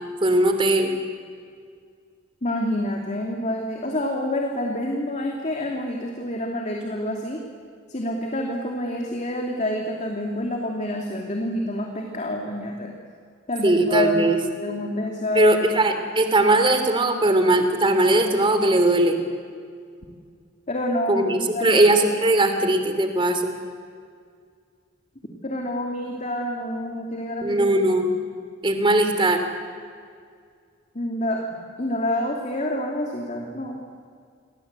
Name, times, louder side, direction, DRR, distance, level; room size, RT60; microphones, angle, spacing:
voice 1, 0.2-1.0 13.6-14.4 15.3-19.2 21.1-23.5 27.4-28.1 28.6-29.4, right 1 dB, 25° right, 7 dB, 3.1 m, -19 dB
voice 2, 2.4-7.4 7.9-12.9 13.5-15.5 20.7-21.9 25.4-27.7 30.9-31.4 31.8-33.8, left 1 dB, 35° left, 1 dB, 2.7 m, -27 dB
29.0 x 24.0 x 8.3 m, 2.1 s
head